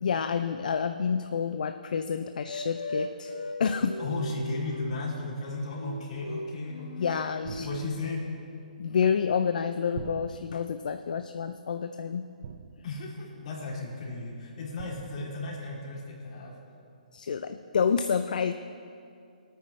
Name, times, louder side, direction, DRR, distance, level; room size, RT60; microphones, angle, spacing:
voice 1, 0.0-3.3 3.6-4.0 7.0-7.7 8.8-12.2 17.1-18.5, left 6 dB, 65° left, 8 dB, 0.5 m, -28 dB
sound 1, 2.5-5.0 5.5-8.2, left 1 dB, 85° left, 1.6 m, -38 dB
voice 2, 4.0-8.3 12.8-16.6, left 3 dB, 50° left, -3 dB, 3.2 m, -35 dB
sound 2, 7.4-8.3 9.9-10.8 12.4-13.1 14.8-15.4, right 6 dB, 50° right, 0.7 m, -43 dB
20.5 x 9.2 x 3.3 m, 2.4 s
hypercardioid pair, 150°, 5 cm